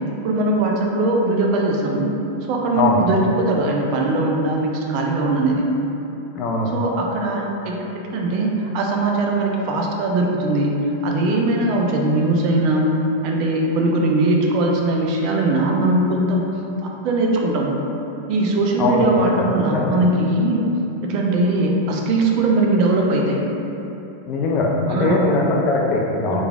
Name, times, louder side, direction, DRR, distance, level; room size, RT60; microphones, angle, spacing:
voice 1, 0.2-2.1 2.4-5.6 6.7-12.9 13.2-16.4 16.8-17.7 18.3-20.7 21.0-23.4 24.9-25.2 26.3-26.4, right 2 dB, 45° right, 0 dB, 0.3 m, -20 dB
voice 2, 6.3-6.8 18.8-19.0 19.7-19.9 24.3-26.4, left 3 dB, 35° left, -2 dB, 0.3 m, -20 dB
3.1 x 2.2 x 2.3 m, 2.9 s
figure-of-eight pair, 90°, 0 cm